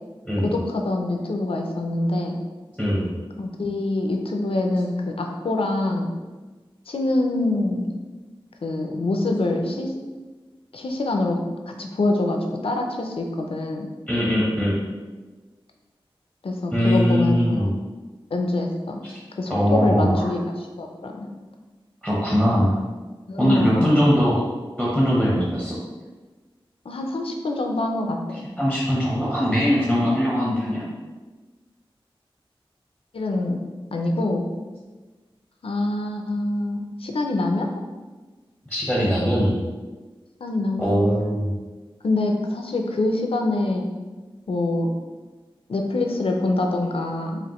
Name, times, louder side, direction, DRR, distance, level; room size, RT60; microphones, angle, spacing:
voice 1, 0.4-2.4 3.4-6.1 6.9-7.9 8.6-9.9 10.7-11.4 11.7-13.9 16.4-17.7 18.3-19.0 19.4-20.4 20.8-21.3 23.3-24.0 26.8-28.2 33.1-33.6 33.9-34.4 35.6-37.7 40.4-41.1 42.0-43.9 44.5-44.9 45.7-47.4, left 2 dB, 80° left, 2 dB, 0.5 m, -25 dB
voice 2, 14.1-14.8 16.7-17.7 19.1-19.2 19.5-20.3 22.0-22.7 23.4-24.4 24.8-25.8 28.6-30.8 38.7-39.6 40.8-41.5, equal, 5° right, -5 dB, 0.9 m, -21 dB
5.0 x 2.6 x 3.0 m, 1.3 s
wide cardioid pair, 75°, 9 cm